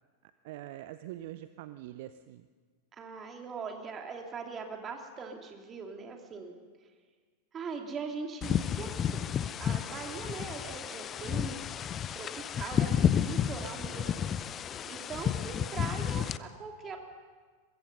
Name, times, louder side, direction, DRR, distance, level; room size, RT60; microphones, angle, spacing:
voice 1, 0.4-2.5, right 14 dB, 50° right, 13 dB, 0.6 m, -44 dB
voice 2, 2.9-6.6 7.5-9.3 9.6-11.6 12.1-14.1 14.9-17.0, right 5 dB, 25° right, 3 dB, 2.8 m, -41 dB
sound 1, 8.4-16.4, left 9 dB, 25° left, 0.7 m, -31 dB
23.5 x 21.5 x 5.4 m, 1.5 s
figure-of-eight pair, 90°, 0 cm